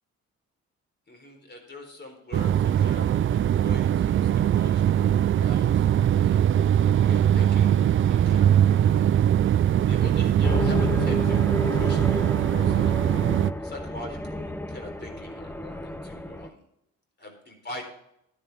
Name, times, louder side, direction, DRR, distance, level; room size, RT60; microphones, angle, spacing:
voice 1, 1.1-6.4 7.0-8.5 8.8-9.1 9.9-11.4 11.7-12.9 13.6-16.6 17.2-17.9, left 1 dB, 35° left, 4 dB, 4.0 m, -43 dB
sound 1, 2.3-13.5, right 10 dB, 45° right, 0.4 m, -21 dB
sound 2, 10.4-16.5, left 1 dB, 5° left, 0.7 m, -31 dB
11.5 x 10.5 x 3.6 m, 0.76 s
cardioid pair, 90°, 30 cm